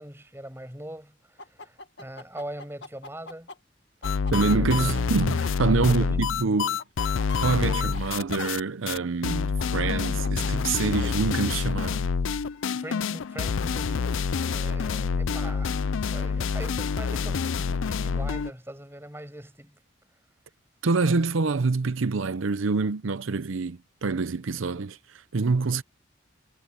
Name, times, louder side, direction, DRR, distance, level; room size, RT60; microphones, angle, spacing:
voice 1, 0.0-3.5 4.1-4.3 4.7-4.9 5.8-6.3 12.7-14.2 14.4-19.8, right 1 dB, 10° right, 7.3 m, -41 dB
sound 1, 1.4-3.5 4.0-5.5 5.9-6.0 6.8-8.0 9.6-11.3, left 4 dB, 60° left, 2.0 m, -40 dB
sound 2, 4.0-8.6 8.9-9.0 9.2-18.5, left 5 dB, 85° left, 0.5 m, -27 dB
voice 2, 4.3-6.8 7.4-12.0 20.8-25.8, right 4 dB, 85° right, 0.7 m, -26 dB
head